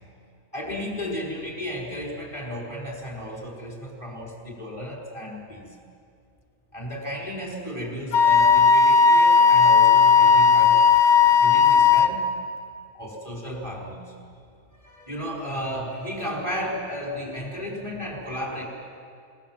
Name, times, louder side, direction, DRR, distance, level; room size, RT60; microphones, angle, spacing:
voice 1, 0.5-5.7 6.7-10.8 11.3-12.2 12.9-14.1 14.8-18.6, equal, 20° left, -2 dB, 4.7 m, -33 dB
Wind instrument woodwind instrument, 8.1-12.1, left 6 dB, 55° left, 1.2 m, -16 dB
28.0 x 18.5 x 7.5 m, 2.4 s
omnidirectional pair, 1.5 m